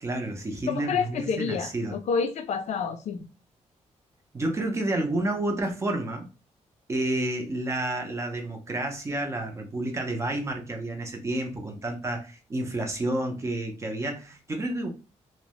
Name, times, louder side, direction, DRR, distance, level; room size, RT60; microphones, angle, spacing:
voice 1, 0.0-2.0 4.3-6.3 6.9-14.9, right 1 dB, 25° right, 0.5 m, -30 dB
voice 2, 0.7-3.3, left 6 dB, 70° left, 0.4 m, -29 dB
2.7 x 2.0 x 2.9 m
wide cardioid pair, 170°, 12 cm